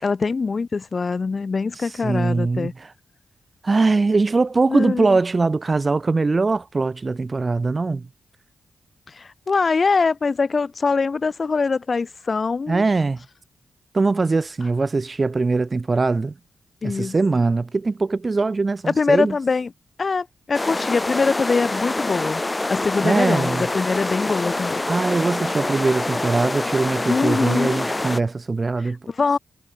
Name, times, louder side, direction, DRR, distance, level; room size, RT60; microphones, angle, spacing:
voice 1, 0.0-2.7 4.7-5.2 9.1-12.8 16.8-17.1 18.9-19.7 20.0-22.4 22.7-24.8 27.1-27.8 28.8-29.4, left 4 dB, 50° left, 0.6 m, -23 dB
voice 2, 2.0-2.7 3.6-8.1 12.7-13.2 13.9-16.3 16.8-19.3 23.0-23.7 24.9-29.0, right 3 dB, 40° right, 1.7 m, -21 dB
sound 1, 20.5-28.2, left 2 dB, 25° left, 2.6 m, -26 dB
supercardioid pair, 45°, 0 cm